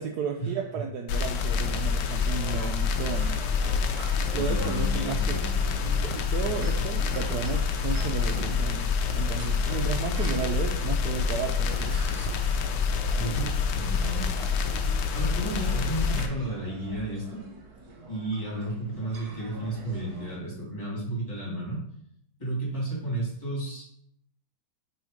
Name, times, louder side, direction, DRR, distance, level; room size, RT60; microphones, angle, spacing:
voice 1, 0.0-3.4 4.3-5.4 5.8-12.0, right 6 dB, 85° right, 3 dB, 0.8 m, -33 dB
sound 1, 1.1-16.3, left 5 dB, 70° left, 1.1 m, -27 dB
sound 2, 1.3-20.4, right 2 dB, 55° right, 1.5 m, -44 dB
voice 2, 4.3-5.9 6.4-6.9 13.2-14.7 15.1-17.4 18.1-21.8 22.4-23.8, right 1 dB, 20° left, -6 dB, 2.7 m, -33 dB
6.2 x 3.5 x 4.9 m, 0.70 s
omnidirectional pair, 2.3 m